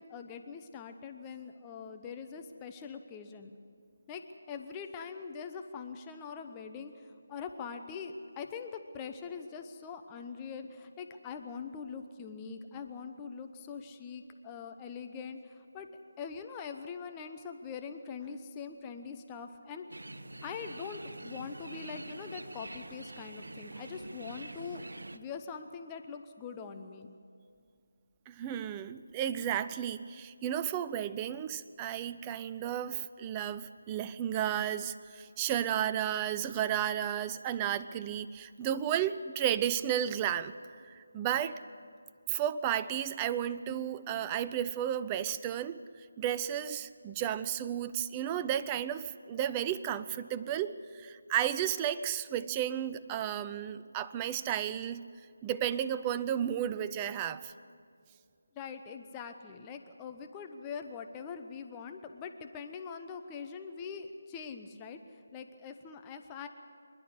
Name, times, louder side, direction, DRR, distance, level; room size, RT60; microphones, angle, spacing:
voice 1, 0.0-3.5 4.1-15.9 16.2-20.0 20.4-24.8 25.1-27.1 58.5-66.5, left 6 dB, 15° left, 6 dB, 0.9 m, -43 dB
sound 1, 19.9-25.2, right 2 dB, 65° right, 0.9 m, -45 dB
voice 2, 28.3-40.5 40.9-41.6 42.3-55.0 55.4-57.5, right 10 dB, 15° right, 12 dB, 0.5 m, -33 dB
25.5 x 11.5 x 10.0 m, 2.2 s
figure-of-eight pair, 155°, 0 cm